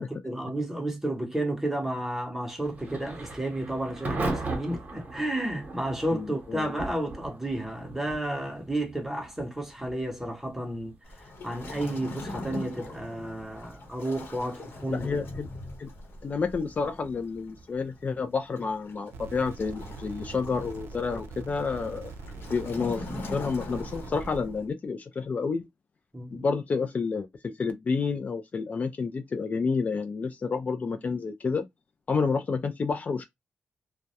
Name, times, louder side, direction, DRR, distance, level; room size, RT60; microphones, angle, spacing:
voice 1, 0.0-15.1 26.1-26.4, right 1 dB, 5° right, 0.7 m, -32 dB
Thunder / Rain, 2.6-19.3, right 2 dB, 40° right, 0.9 m, -40 dB
voice 2, 6.1-6.7 14.9-15.5 15.8-15.9 16.2-22.1 22.5-25.7 26.3-31.6 32.1-33.2, left 4 dB, 40° left, 0.3 m, -30 dB
Waves surf, 11.0-24.7, left 2 dB, 70° left, 0.8 m, -42 dB
sound 1, 19.1-24.4, right 4 dB, 85° right, 0.3 m, -42 dB
2.2 x 2.0 x 2.7 m
cardioid pair, 110°, 4 cm